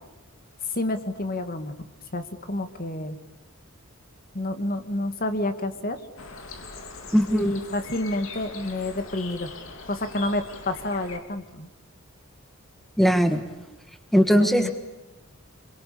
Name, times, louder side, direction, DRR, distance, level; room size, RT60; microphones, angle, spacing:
voice 1, 0.7-1.7 2.1-3.2 4.3-6.0 7.3-9.5 9.9-11.7 14.4-14.7, left 1 dB, 45° left, 8 dB, 2.2 m, -29 dB
sound 1, 6.2-11.2, left 4 dB, 70° left, 3.0 m, -41 dB
voice 2, 7.1-7.5 13.0-13.4 14.1-14.7, equal, ahead, 7 dB, 1.6 m, -19 dB
28.0 x 23.5 x 8.7 m, 1.0 s
head